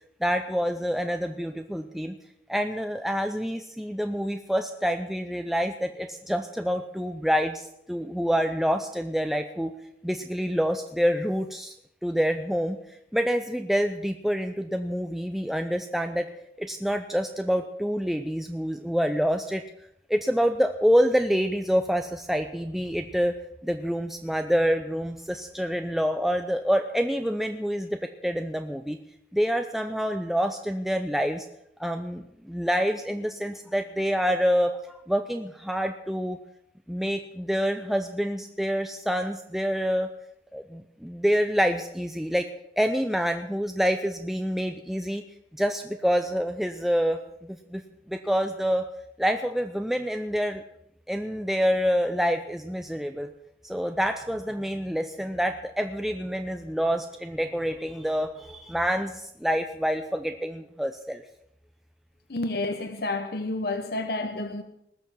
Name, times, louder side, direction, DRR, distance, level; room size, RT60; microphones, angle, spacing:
voice 1, 0.2-2.2 2.5-9.7 10.0-11.7 12.0-12.8 13.1-16.3 16.6-19.6 20.1-23.4 23.6-29.0 29.3-31.5 31.8-36.4 36.9-40.1 40.5-42.5 42.8-45.2 45.6-47.8 48.1-48.9 49.2-50.6 51.1-53.3 53.6-61.2, equal, ahead, 0.6 m, -27 dB
voice 2, 62.3-64.6, left 2 dB, 60° left, 1.0 m, -30 dB
19.5 x 7.0 x 7.6 m
head